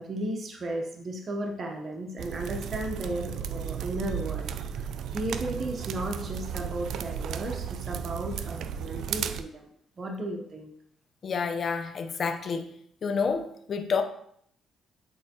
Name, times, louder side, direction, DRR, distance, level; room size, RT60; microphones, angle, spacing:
voice 1, 0.0-9.7 10.0-10.7, right 1 dB, 45° right, 2 dB, 0.8 m, -35 dB
sound 1, 2.2-9.4, right 8 dB, 75° right, 0.4 m, -34 dB
voice 2, 11.2-12.7 13.0-14.0, left 5 dB, 50° left, 6 dB, 0.7 m, -29 dB
8.2 x 4.4 x 2.9 m, 0.69 s
cardioid pair, 90°, 0 cm